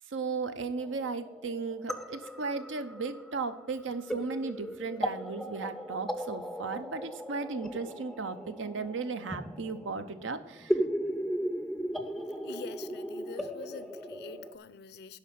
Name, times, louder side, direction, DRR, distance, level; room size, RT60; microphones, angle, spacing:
voice 1, 0.1-10.8, right 4 dB, 85° right, 0.7 m, -36 dB
sound 1, 0.8-14.6, equal, ahead, 0.4 m, -37 dB
voice 2, 12.4-15.2, left 5 dB, 55° left, 0.5 m, -46 dB
11.0 x 4.3 x 7.5 m
head